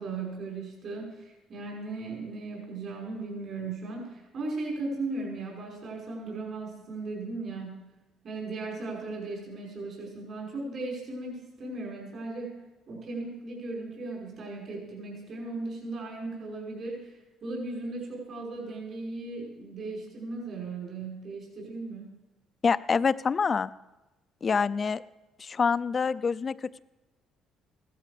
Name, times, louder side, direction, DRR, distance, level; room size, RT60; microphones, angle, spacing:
voice 1, 0.0-7.9 8.2-12.6 12.9-22.1, right 3 dB, 50° right, -3 dB, 5.5 m, -37 dB
voice 2, 22.6-23.7 24.4-25.0 25.4-26.8, left 5 dB, 35° left, 15 dB, 0.4 m, -26 dB
16.0 x 13.0 x 5.1 m, 1.1 s
cardioid pair, 105°, 0 cm